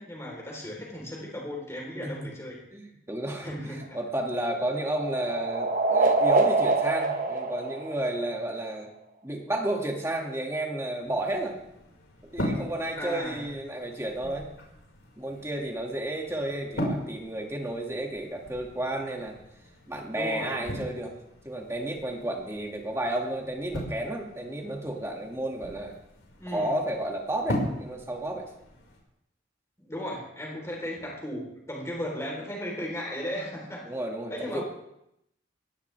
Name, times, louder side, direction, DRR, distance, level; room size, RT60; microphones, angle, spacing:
voice 1, 0.0-2.6 3.4-4.0 12.9-13.5 20.1-20.6 26.4-26.7 29.8-33.9 34.3-34.6, equal, 15° left, -2 dB, 4.0 m, -36 dB
voice 2, 2.7-8.9 9.2-11.6 12.3-14.6 15.2-19.4 19.9-21.1 21.4-25.9 26.5-28.5 33.9-34.6, right 1 dB, 15° right, 0 dB, 2.2 m, -32 dB
sound 1, 3.8-8.6, right 3 dB, 40° right, 1.4 m, -26 dB
sound 2, 11.0-29.0, equal, 85° left, 5.2 m, -39 dB
21.5 x 16.5 x 3.5 m, 0.81 s
head